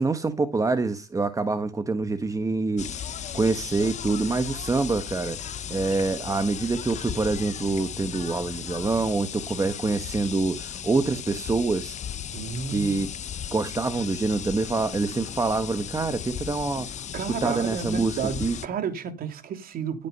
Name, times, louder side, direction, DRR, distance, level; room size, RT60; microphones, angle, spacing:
voice 1, 0.0-12.0 12.7-13.1 13.5-17.1 17.4-18.5, right 3 dB, 20° right, 1.3 m, -26 dB
sound 1, 2.8-18.7, left 9 dB, 45° left, 0.9 m, -36 dB
voice 2, 12.3-13.0 17.1-20.1, right 7 dB, 60° right, 3.3 m, -32 dB
15.5 x 8.9 x 5.5 m
cardioid pair, 110°, 17 cm